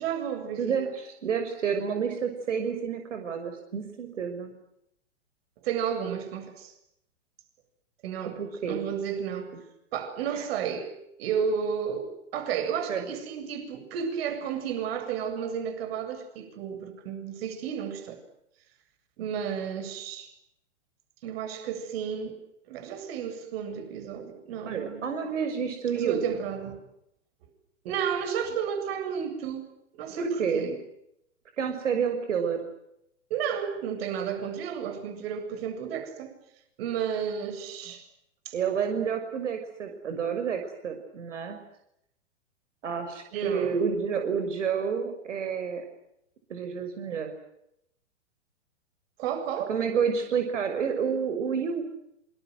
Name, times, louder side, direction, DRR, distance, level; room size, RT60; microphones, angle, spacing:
voice 1, 0.0-0.8 5.6-6.7 8.0-9.5 9.9-10.9 11.2-18.2 19.2-20.3 21.2-22.4 22.7-25.1 25.9-26.8 27.8-29.7 29.9-30.8 33.3-36.3 36.8-38.0 38.4-38.6 43.3-43.8 49.2-49.7, right 7 dB, 50° right, 9 dB, 7.8 m, -32 dB
voice 2, 0.6-4.5 8.4-8.9 10.3-10.5 12.9-13.1 24.7-26.2 30.1-30.7 31.6-32.6 38.5-41.6 42.8-45.8 46.5-47.3 49.7-51.8, right 6 dB, 75° right, 6 dB, 6.3 m, -29 dB
27.5 x 26.5 x 8.0 m, 0.78 s
hypercardioid pair, 125°, 37 cm